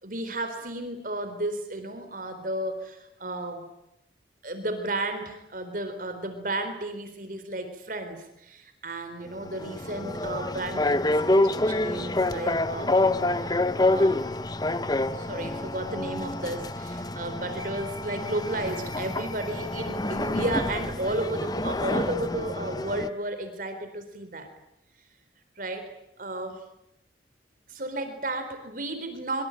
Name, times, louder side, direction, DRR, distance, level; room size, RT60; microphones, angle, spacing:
voice 1, 0.0-3.6 4.4-14.2 15.1-24.5 25.6-26.6 27.7-29.4, right 1 dB, 50° right, 7 dB, 4.0 m, -33 dB
sound 1, 9.3-23.1, left 2 dB, 20° left, 0.9 m, -27 dB
24.5 x 24.0 x 9.1 m, 0.82 s
head